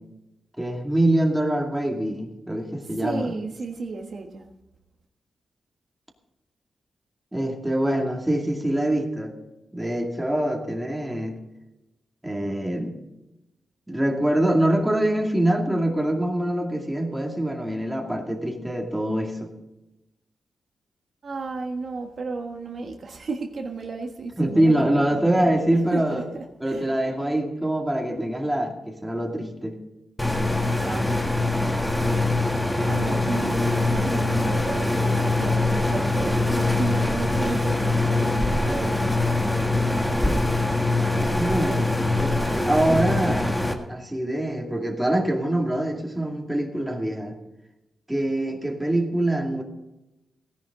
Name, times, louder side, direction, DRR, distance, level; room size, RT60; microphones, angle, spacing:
voice 1, 0.6-3.3 7.3-9.4 9.7-11.4 12.2-13.0 13.9-19.5 24.4-26.2 26.6-29.8 40.2-40.4 41.3-43.6 43.9-47.4 48.1-49.6, right 1 dB, 10° right, 1 dB, 2.4 m, -24 dB
voice 2, 2.9-4.5 21.2-24.7 25.1-25.5 25.9-26.9 30.8-31.0 32.9-39.3, right 3 dB, 55° right, 2 dB, 1.4 m, -33 dB
sound 1, 30.2-43.7, left 2 dB, 10° left, 1.6 m, -23 dB
17.0 x 10.5 x 3.8 m, 0.95 s
cardioid pair, 100°, 0 cm